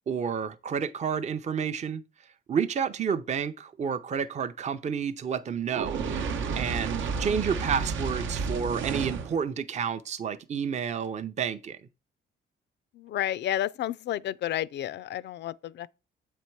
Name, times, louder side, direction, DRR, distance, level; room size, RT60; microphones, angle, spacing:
voice 1, 0.0-2.0 2.5-6.0 6.6-11.8, right 7 dB, 35° right, 0.5 m, -30 dB
Fire, 5.7-9.4, right 5 dB, 80° right, 0.8 m, -31 dB
voice 2, 13.0-15.9, left 12 dB, 60° left, 0.4 m, -31 dB
7.7 x 4.3 x 4.5 m
cardioid pair, 90°, 20 cm